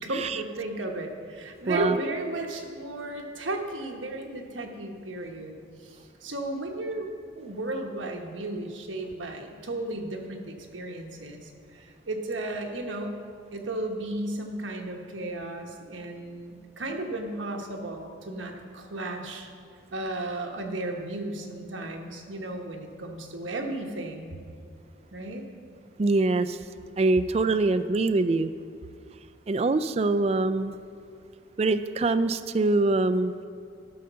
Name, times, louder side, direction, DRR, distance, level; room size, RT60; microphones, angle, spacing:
voice 1, 0.0-13.1 13.5-19.5 19.9-24.4 25.1-25.4, right 2 dB, 90° right, 2 dB, 1.2 m, -34 dB
voice 2, 1.7-2.0 26.0-26.6 27.0-28.5 29.5-30.7 31.6-33.3, right 3 dB, 35° right, 12 dB, 0.3 m, -24 dB
12.5 x 6.4 x 5.7 m, 2.2 s
head